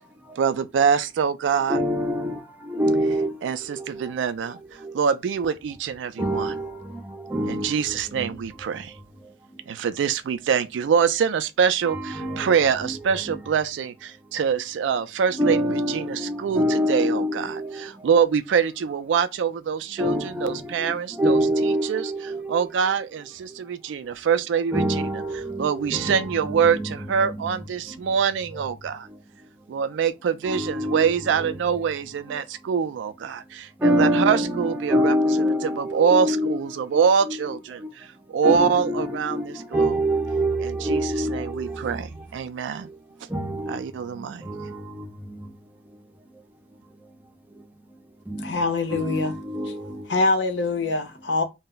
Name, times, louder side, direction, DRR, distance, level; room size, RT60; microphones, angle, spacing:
voice 1, 0.4-1.8 3.4-6.6 7.5-8.9 9.7-15.6 15.9-22.1 22.5-25.0 25.6-29.1 29.7-35.2 35.6-39.9 40.6-42.9 43.7-44.5, right 7 dB, 85° right, 0.3 m, -25 dB
voice 2, 1.7-3.3 3.7-4.0 4.8-4.9 6.2-8.3 11.8-13.0 13.2-13.4 15.3-17.9 20.0-22.7 24.7-27.6 30.5-31.5 33.8-36.6 36.9-37.9 38.4-42.0 43.3-43.8 44.2-45.5 48.3-48.6 48.9-50.1, equal, 10° right, 0.4 m, -26 dB
voice 3, 48.4-49.3 50.1-51.4, left 3 dB, 80° left, 0.7 m, -24 dB
2.2 x 2.0 x 3.7 m
head